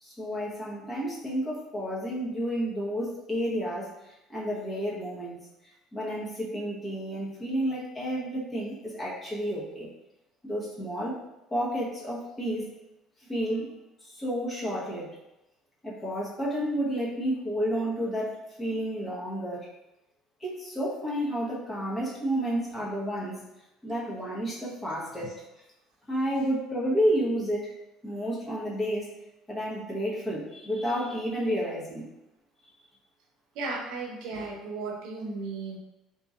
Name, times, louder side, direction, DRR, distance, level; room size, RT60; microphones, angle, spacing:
voice 1, 0.0-3.9 4.3-5.4 5.9-9.9 10.4-11.2 11.5-12.7 13.3-13.7 14.0-15.1 15.8-19.7 20.4-23.4 23.8-25.4 26.1-27.7 28.0-29.1 29.5-32.1, equal, 20° left, -6 dB, 1.1 m, -31 dB
voice 2, 33.5-35.8, right 3 dB, 75° right, 0 dB, 0.7 m, -35 dB
2.8 x 2.8 x 2.4 m, 0.95 s
supercardioid pair, 100°, 0 cm